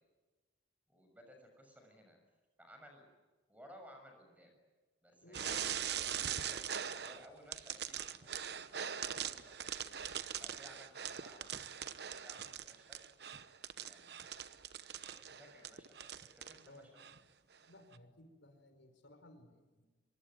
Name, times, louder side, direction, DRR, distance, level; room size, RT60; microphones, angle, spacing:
voice 1, 0.9-2.2 2.6-3.1 3.5-4.5 5.0-9.6 10.4-13.0 13.8-14.5 14.9-16.9, equal, 10° right, 4 dB, 6.5 m, -59 dB
sound 1, 5.3-7.3 7.5-16.6 17.0-17.2 17.9-18.0, right 8 dB, 60° right, 1.0 m, -42 dB
voice 2, 17.7-19.9, left 1 dB, 80° left, 6 dB, 4.7 m, -59 dB
24.5 x 24.0 x 9.5 m, 1.3 s
head